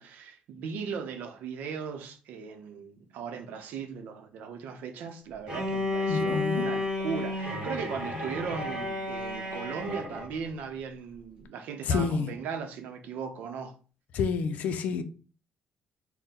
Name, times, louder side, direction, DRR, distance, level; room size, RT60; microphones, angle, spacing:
voice 1, 0.0-13.7, right 6 dB, 80° right, 0.7 m, -38 dB
Bowed string instrument, 5.5-10.3, left 2 dB, 30° right, 1.9 m, -32 dB
voice 2, 6.1-6.6 11.9-12.3 14.1-15.0, left 5 dB, 60° left, 0.5 m, -28 dB
4.2 x 2.2 x 3.7 m
cardioid pair, 180°, 3 cm